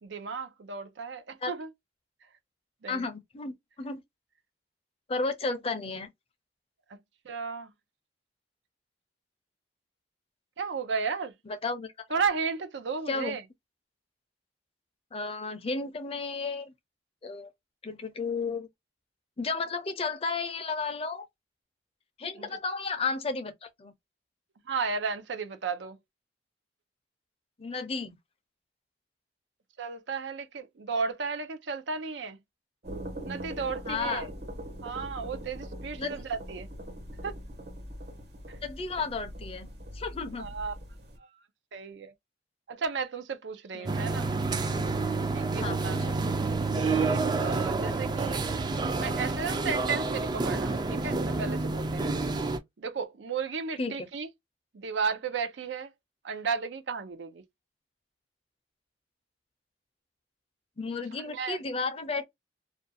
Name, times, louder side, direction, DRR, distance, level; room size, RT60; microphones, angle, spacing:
voice 1, 0.0-1.7 2.8-3.0 7.2-7.7 10.6-11.3 12.1-13.4 22.4-22.5 24.7-26.0 29.8-32.4 33.2-34.3 34.8-36.7 37.2-37.3 40.4-40.7 41.2-41.3 41.7-42.1 42.7-44.3 45.3-46.0 46.7-48.4 49.0-52.1 52.8-54.3 54.7-55.9 56.2-57.4 61.2-61.6, right 5 dB, 85° right, 0.5 m, -34 dB
voice 2, 2.9-4.0 5.1-6.1 11.5-11.9 13.1-13.4 15.1-16.7 17.2-17.5 17.8-18.7 19.4-21.3 22.2-23.9 27.6-28.2 33.9-34.3 36.0-36.2 38.6-39.7 39.9-40.5 43.7-43.9 45.6-46.2 53.8-54.1 60.8-62.3, left 4 dB, 35° left, 0.5 m, -33 dB
sound 1, 32.8-41.2, equal, 65° right, 1.2 m, -42 dB
sound 2, 43.9-52.6, right 3 dB, 25° right, 0.4 m, -29 dB
2.5 x 2.2 x 2.6 m
head